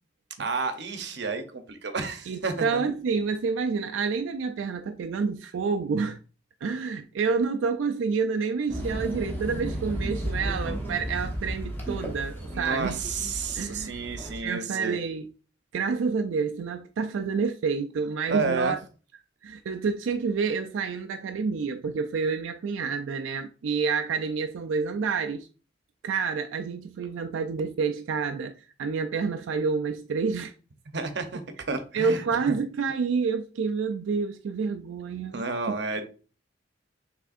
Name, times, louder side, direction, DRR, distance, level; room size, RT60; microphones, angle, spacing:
voice 1, 0.4-2.8 12.5-15.0 18.3-18.8 30.9-31.4 31.7-32.5 35.3-36.1, right 4 dB, 60° right, 0.8 m, -31 dB
voice 2, 2.3-6.2 6.6-13.0 13.5-14.0 14.4-15.2 15.7-18.8 19.4-25.5 26.0-30.5 31.9-35.8, right 5 dB, 90° right, 0.4 m, -28 dB
sound 1, 8.7-14.4, right 1 dB, 10° left, 1.1 m, -34 dB
6.1 x 3.4 x 2.5 m
head